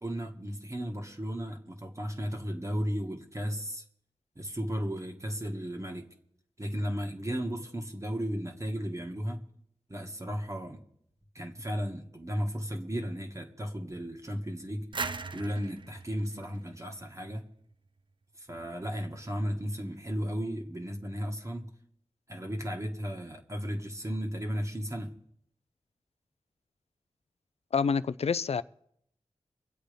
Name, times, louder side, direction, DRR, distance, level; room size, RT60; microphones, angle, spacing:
voice 1, 0.0-3.8 4.4-6.1 6.6-9.4 9.9-10.8 11.4-14.9 15.3-17.5 18.4-21.7 22.3-25.1, equal, 25° right, 1.7 m, -35 dB
sound 1, 14.9-17.6, right 4 dB, 45° right, 0.7 m, -39 dB
voice 2, 27.7-28.6, left 5 dB, 65° left, 0.5 m, -27 dB
23.5 x 7.9 x 5.2 m
cardioid pair, 50°, 11 cm